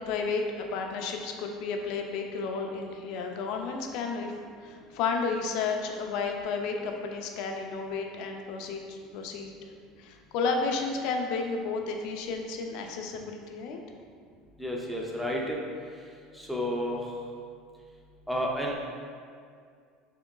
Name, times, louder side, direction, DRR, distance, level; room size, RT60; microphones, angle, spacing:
voice 1, 0.0-4.3 4.6-9.7 10.0-13.8 16.3-16.4, left 4 dB, 65° left, 3 dB, 0.4 m, -32 dB
voice 2, 14.6-15.6 16.3-17.1 18.3-18.8, equal, ahead, -3 dB, 0.5 m, -31 dB
4.4 x 2.8 x 2.3 m, 2.2 s
supercardioid pair, 110°, 0 cm